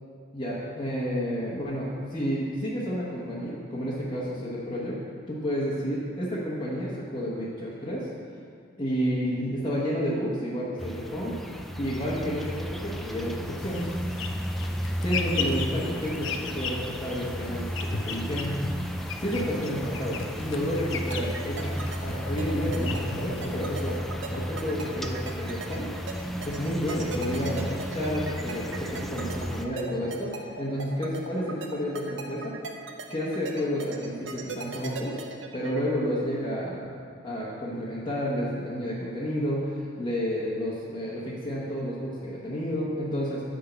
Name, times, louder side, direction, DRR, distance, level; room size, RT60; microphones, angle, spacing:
voice 1, 0.3-5.0 5.3-8.1 8.8-11.4 11.8-13.9 15.0-18.8 19.2-21.7 22.0-24.0 24.3-25.9 26.4-32.6 33.1-35.2 35.5-36.9 37.2-43.5, equal, 25° left, -7 dB, 1.1 m, -30 dB
sound 1, 10.8-29.7, equal, ahead, 0.3 m, -34 dB
sound 2, 13.6-24.0, left 4 dB, 75° left, 0.6 m, -37 dB
sound 3, 21.1-35.8, right 3 dB, 65° right, 0.8 m, -38 dB
9.9 x 3.8 x 6.7 m, 2.3 s
head